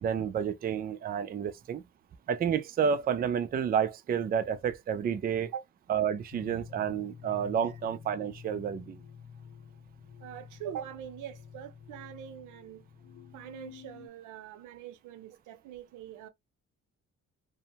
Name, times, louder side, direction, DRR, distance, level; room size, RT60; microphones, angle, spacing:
voice 1, 0.0-1.8 2.3-5.5 5.9-9.0, right 7 dB, 30° right, 0.4 m, -30 dB
sound 1, 6.3-14.1, left 7 dB, 55° left, 0.7 m, -49 dB
voice 2, 10.2-12.8 13.3-16.3, right 9 dB, 85° right, 0.6 m, -43 dB
2.6 x 2.1 x 2.8 m
cardioid pair, 90°, 30 cm